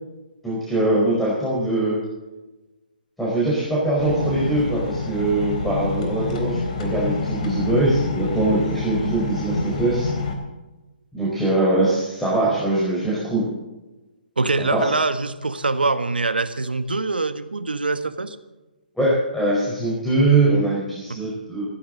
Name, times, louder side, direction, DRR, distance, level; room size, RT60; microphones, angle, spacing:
voice 1, 0.4-2.0 3.2-10.1 11.1-13.5 14.7-14.9 19.0-21.7, right 2 dB, 5° left, -6 dB, 4.8 m, -22 dB
sound 1, 4.0-10.3, left 3 dB, 50° left, 4.0 m, -27 dB
voice 2, 14.4-18.4 21.1-21.2, right 3 dB, 85° right, 10 dB, 1.5 m, -24 dB
17.5 x 16.0 x 4.0 m, 1.1 s
figure-of-eight pair, 135°, 5 cm